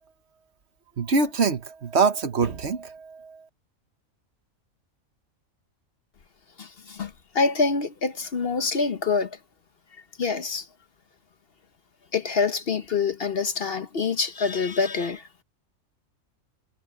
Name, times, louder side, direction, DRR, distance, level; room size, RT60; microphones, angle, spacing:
voice 1, 1.0-3.4, right 4 dB, 55° right, 1.4 m, -24 dB
voice 2, 6.6-9.4 10.2-10.7 12.1-15.3, left 4 dB, 50° left, 1.1 m, -26 dB
omnidirectional pair, 1.4 m